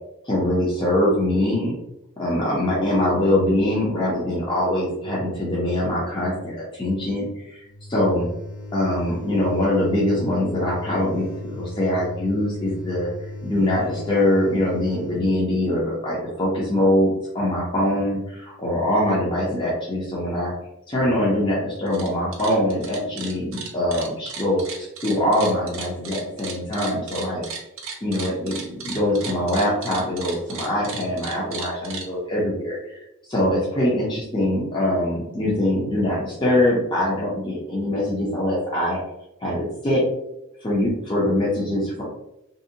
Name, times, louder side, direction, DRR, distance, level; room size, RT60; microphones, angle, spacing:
voice 1, 0.2-1.7 2.2-7.6 7.9-8.3 8.7-13.1 13.4-20.5 20.9-27.4 28.0-33.0 33.3-39.0 39.4-40.0 40.6-42.0, left 1 dB, 20° left, -7 dB, 0.5 m, -23 dB
sound 1, 7.6-15.2, left 2 dB, 75° left, 0.7 m, -36 dB
sound 2, 21.8-22.1 22.3-32.1, right 5 dB, 65° right, 0.5 m, -35 dB
2.6 x 2.1 x 2.6 m, 0.88 s
head